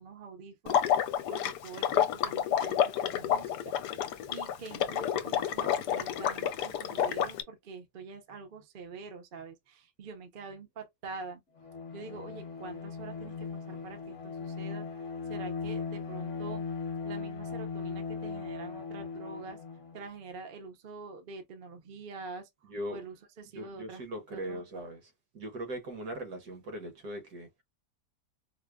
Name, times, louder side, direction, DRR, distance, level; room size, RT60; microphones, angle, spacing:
voice 1, 0.0-3.7 4.3-11.4 11.9-16.6 17.0-19.6 19.9-24.0 24.3-24.6, right 4 dB, 50° right, 0.7 m, -46 dB
Water / Liquid, 0.7-7.4, left 9 dB, 75° left, 1.1 m, -29 dB
Bowed string instrument, 11.6-20.1, left 5 dB, 50° left, 1.1 m, -38 dB
voice 2, 22.7-23.0 23.5-25.0 25.3-27.6, right 1 dB, 65° right, 1.5 m, -39 dB
4.8 x 2.1 x 2.3 m
omnidirectional pair, 1.8 m